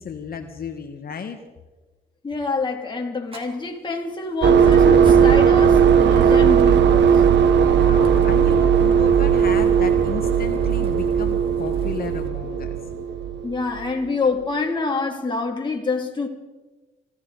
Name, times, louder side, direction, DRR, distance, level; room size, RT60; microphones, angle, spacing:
voice 1, 0.0-1.4 6.4-6.5 7.6-12.7, left 6 dB, 50° left, 1.3 m, -33 dB
voice 2, 2.2-7.2 13.4-16.3, left 3 dB, 25° left, 2.5 m, -26 dB
Fire, 3.3-12.3, right 1 dB, 30° right, 2.9 m, -39 dB
sound 1, 4.4-13.9, right 7 dB, 65° right, 1.1 m, -17 dB
25.5 x 14.0 x 3.9 m
cardioid pair, 90°, 20 cm